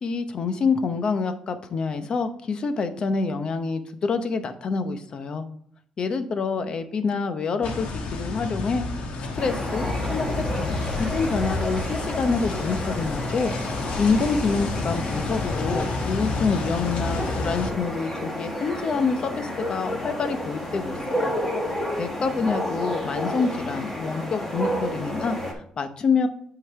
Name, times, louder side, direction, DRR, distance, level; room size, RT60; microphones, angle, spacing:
voice 1, 0.0-5.5 6.0-8.9 9.2-13.5 14.0-21.3 22.0-26.3, left 4 dB, 45° left, 10 dB, 0.7 m, -27 dB
sound 1, 7.6-17.7, left 3 dB, 80° left, 1.2 m, -30 dB
sound 2, 9.4-25.5, left 1 dB, 15° left, 1.5 m, -31 dB
8.2 x 3.9 x 4.7 m, 0.65 s
cardioid pair, 120°, 2 cm